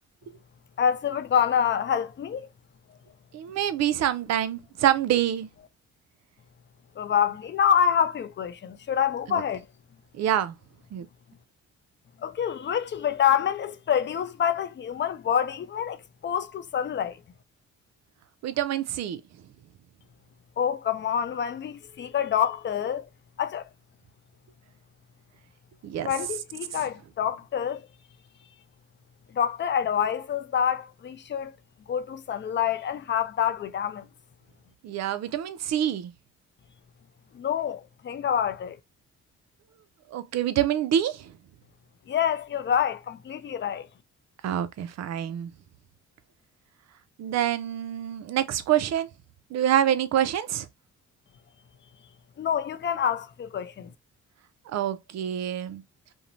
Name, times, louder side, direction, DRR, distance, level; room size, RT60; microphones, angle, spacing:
voice 1, 0.8-2.5 7.0-9.6 12.2-17.2 20.6-23.1 23.4-23.6 26.0-27.9 29.3-31.5 31.9-34.1 37.3-38.8 42.1-43.9 52.4-53.9, left 8 dB, 40° left, 0.4 m, -27 dB
voice 2, 3.3-5.5 9.3-9.4 10.2-10.6 10.9-11.1 18.4-19.2 25.8-26.1 34.8-36.1 40.1-41.3 44.4-45.5 47.2-49.1 49.5-50.7 54.7-55.8, right 11 dB, 60° right, 0.5 m, -26 dB
2.6 x 2.1 x 2.9 m
cardioid pair, 90°, 30 cm